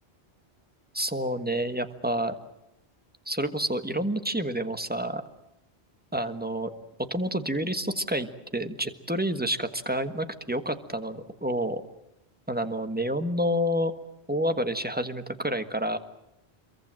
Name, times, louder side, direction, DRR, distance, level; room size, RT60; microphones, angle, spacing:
voice 1, 0.9-2.4 3.3-5.2 6.1-6.7 7.1-11.8 12.5-13.9 14.3-16.0, equal, 10° right, 8 dB, 1.4 m, -29 dB
26.5 x 23.0 x 7.6 m, 0.87 s
omnidirectional pair, 1.1 m